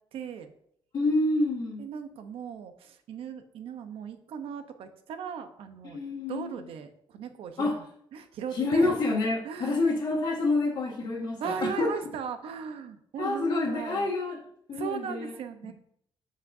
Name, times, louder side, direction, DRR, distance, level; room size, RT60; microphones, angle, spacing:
voice 1, 0.1-0.5 1.8-6.0 6.3-7.8 8.1-9.0 9.4-9.8 11.4-14.1 14.7-15.7, right 7 dB, 90° right, 8 dB, 0.9 m, -38 dB
voice 2, 0.9-1.8 5.8-6.7 7.6-7.7 8.5-11.9 13.2-14.4 14.7-15.3 15.6-15.7, left 2 dB, 50° left, -6 dB, 1.7 m, -28 dB
13.5 x 5.2 x 2.7 m, 0.68 s
wide cardioid pair, 165°, 9 cm